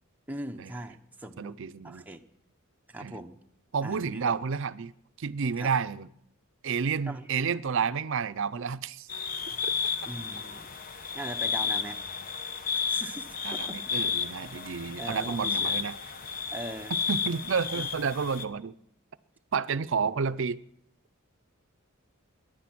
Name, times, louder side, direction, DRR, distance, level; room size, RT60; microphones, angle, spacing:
voice 1, 0.3-2.2 2.9-3.4 3.8-4.4 5.6-5.7 7.1-7.3 10.1-10.7 11.1-12.0 12.7-13.4 13.7-13.8 15.0-15.8 16.5-16.9, right 1 dB, 10° right, 4 dB, 0.8 m, -40 dB
voice 2, 1.4-2.0 3.0-3.2 3.7-4.9 5.2-6.1 6.6-9.1 9.6-9.7 13.4-15.9 17.1-18.7 19.5-20.6, right 6 dB, 60° right, 14 dB, 0.5 m, -30 dB
sound 1, 9.1-18.4, left 6 dB, 45° left, 1.0 m, -32 dB
23.0 x 10.5 x 6.0 m, 0.76 s
head